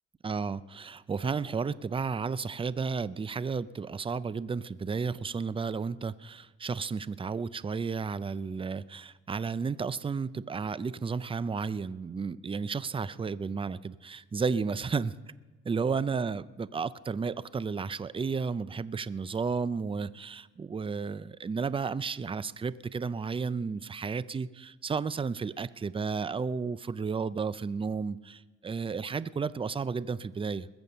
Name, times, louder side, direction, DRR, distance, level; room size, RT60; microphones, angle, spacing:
voice 1, 0.2-15.1 15.6-30.7, right 5 dB, 20° right, 18 dB, 0.4 m, -33 dB
21.0 x 7.1 x 6.8 m, 1.2 s
cardioid pair, 90°, 30 cm